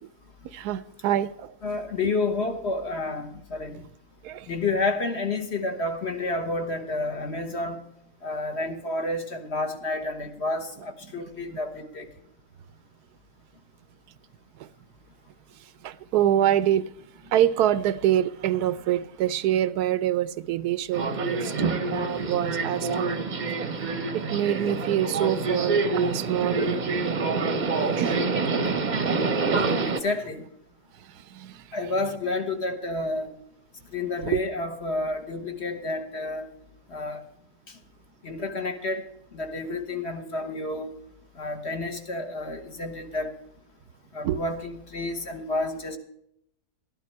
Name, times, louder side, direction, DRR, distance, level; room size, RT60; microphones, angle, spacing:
voice 1, 0.5-1.5 4.2-4.5 15.8-16.8 17.3-21.4 21.9-23.3 24.1-27.1 28.0-28.2 29.5-29.7 31.3-31.5 34.2-34.4 44.2-44.4, right 11 dB, 80° right, 1.2 m, -25 dB
voice 2, 1.6-3.8 4.5-7.8 8.2-12.0 29.8-30.4 31.7-33.3 33.9-36.5 36.9-37.2 38.2-39.0 39.3-40.9 41.4-43.3 44.1-46.0, left 2 dB, 45° left, 1.6 m, -30 dB
Subway metro underground, 20.9-30.0, right 3 dB, 35° right, 0.8 m, -26 dB
12.5 x 11.0 x 4.5 m
omnidirectional pair, 1.6 m